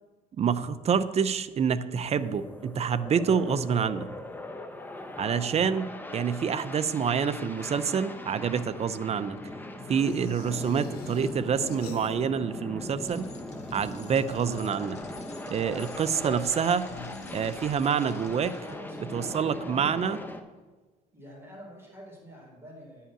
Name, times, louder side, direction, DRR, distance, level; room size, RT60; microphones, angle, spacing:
voice 1, 0.4-4.1 5.2-9.4 9.9-13.3 13.7-15.0 15.5-16.9 17.3-18.5 19.1-20.2, right 7 dB, 40° right, 13 dB, 0.7 m, -27 dB
sound 1, 2.0-20.4, left 1 dB, 10° left, 1.1 m, -40 dB
sound 2, 9.9-12.5 12.8-13.6 15.6-18.1, left 4 dB, 70° left, 1.6 m, -46 dB
Bicycle, 13.1-18.7, left 4 dB, 40° left, 1.7 m, -52 dB
voice 2, 17.7-20.0 21.1-23.1, equal, 15° right, -2 dB, 4.1 m, -47 dB
11.0 x 5.7 x 8.9 m, 1.3 s
cardioid pair, 110°, 17 cm